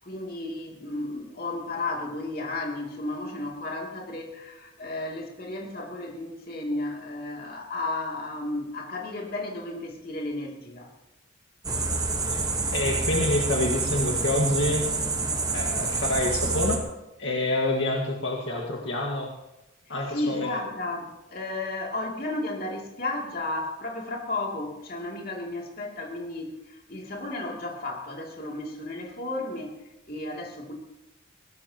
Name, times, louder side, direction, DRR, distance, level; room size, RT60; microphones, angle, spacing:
voice 1, 0.0-10.9 20.1-29.8 30.1-30.7, left 2 dB, 45° left, 0 dB, 2.9 m, -33 dB
sound 1, 11.6-16.8, right 3 dB, 20° right, 1.4 m, -27 dB
voice 2, 12.7-14.9 15.5-16.8 17.2-19.3 19.9-20.5, left 1 dB, 65° left, -1 dB, 1.8 m, -27 dB
21.0 x 17.0 x 3.0 m, 0.97 s
head